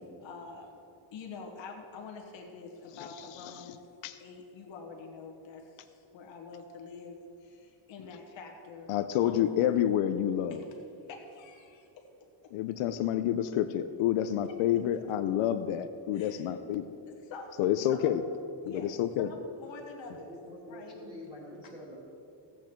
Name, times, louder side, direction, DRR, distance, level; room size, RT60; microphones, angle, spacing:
voice 1, 0.2-0.7 1.1-3.8 4.2-8.9 9.2-9.5 10.5-10.6 11.1-12.0 16.1-16.5 17.1-17.6 17.9-18.2 18.6-20.3 20.7-20.9, left 4 dB, 65° left, 1 dB, 1.6 m, -46 dB
voice 2, 8.9-10.6 12.5-16.8 17.6-18.2 18.7-19.3, left 11 dB, 85° left, 9 dB, 0.7 m, -28 dB
voice 3, 20.1-22.0, left 1 dB, 10° right, -5 dB, 2.5 m, -46 dB
14.5 x 8.3 x 4.5 m, 2.6 s
cardioid pair, 165°, 50 cm